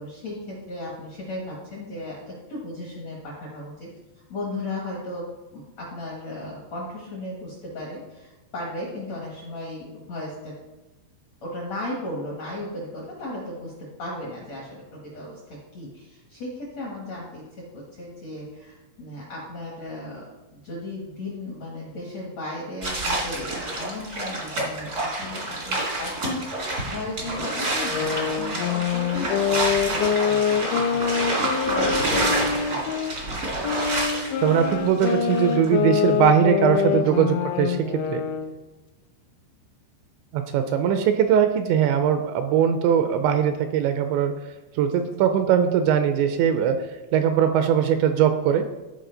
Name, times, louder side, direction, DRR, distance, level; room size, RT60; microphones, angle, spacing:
voice 1, 0.0-3.9 4.3-10.6 11.4-33.2 36.9-37.1, left 1 dB, 65° left, -4 dB, 1.7 m, -36 dB
sound 1, 22.8-35.7, right 2 dB, 55° right, 1.0 m, -28 dB
sound 2, 27.8-33.2 33.6-38.5, left 7 dB, 85° left, 2.8 m, -25 dB
voice 2, 34.4-38.2 40.3-44.4 44.8-46.9 47.1-48.6, right 8 dB, 80° right, 7 dB, 2.7 m, -21 dB
13.5 x 4.9 x 3.9 m, 1.1 s
omnidirectional pair, 5.4 m